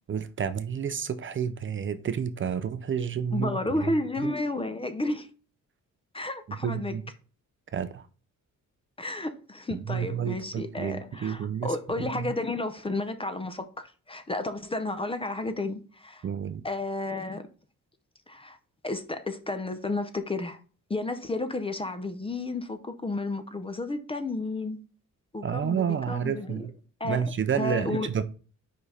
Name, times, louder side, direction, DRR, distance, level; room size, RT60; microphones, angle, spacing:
voice 1, 0.1-3.5 4.2-4.3 6.6-7.0 7.7-8.0 9.7-12.3 16.2-16.6 25.4-26.7 27.0-28.2, right 8 dB, 40° right, 0.5 m, -30 dB
voice 2, 3.3-5.3 6.1-7.0 9.0-16.3 16.6-17.5 18.3-18.6 18.8-20.6 20.9-24.8 25.3-26.7 27.0-28.1, left 2 dB, 15° left, 0.5 m, -32 dB
5.0 x 4.9 x 4.1 m
wide cardioid pair, 170°, 32 cm